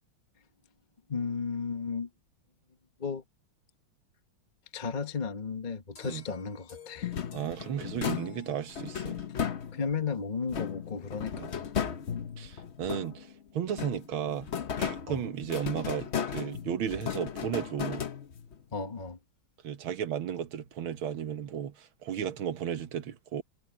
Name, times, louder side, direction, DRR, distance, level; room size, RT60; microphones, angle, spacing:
voice 1, 1.1-2.1 3.0-3.2 4.7-7.1 9.4-11.7 15.1-15.2 18.7-19.2, left 5 dB, 25° left, 1.2 m, -34 dB
sound 1, 6.0-9.2, left 6 dB, 75° left, 4.8 m, -54 dB
sound 2, 7.0-10.0 10.5-13.3 13.7-18.6, left 8 dB, 50° left, 0.8 m, -35 dB
voice 2, 7.3-9.2 11.4-11.5 12.4-13.3 13.5-14.5 14.8-18.0 19.6-23.4, right 9 dB, 75° right, 2.1 m, -34 dB
omnidirectional pair, 2.3 m